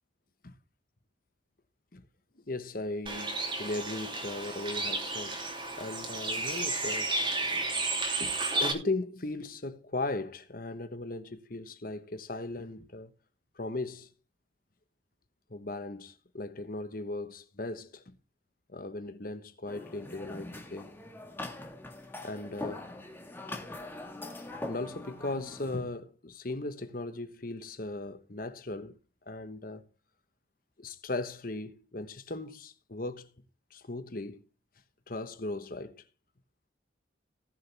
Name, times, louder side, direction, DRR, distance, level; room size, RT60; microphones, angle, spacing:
voice 1, 2.5-5.4 5.8-7.1 8.2-13.1 13.6-14.1 15.5-18.1 18.7-20.9 22.2-22.9 24.4-29.0 29.3-29.8 30.8-33.3 33.7-34.4 35.1-36.0, left 2 dB, 50° left, 1.2 m, -38 dB
Bird, 3.1-8.7, right 2 dB, 25° right, 2.9 m, -32 dB
sound 1, 19.7-25.8, left 2 dB, 10° left, 1.7 m, -42 dB
19.0 x 7.0 x 3.4 m
head